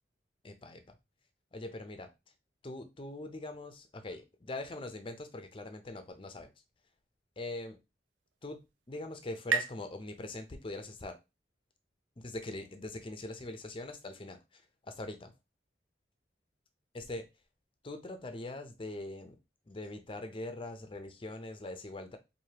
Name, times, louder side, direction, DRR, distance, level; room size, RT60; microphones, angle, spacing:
voice 1, 0.4-1.0 1.5-2.1 2.6-6.5 7.4-7.8 8.4-11.2 12.2-15.3 16.9-17.3 17.8-19.4 19.7-22.2, left 2 dB, 30° left, 0.6 m, -42 dB
sound 1, 8.1-11.4, right 6 dB, 85° right, 0.6 m, -39 dB
4.8 x 2.6 x 2.9 m
head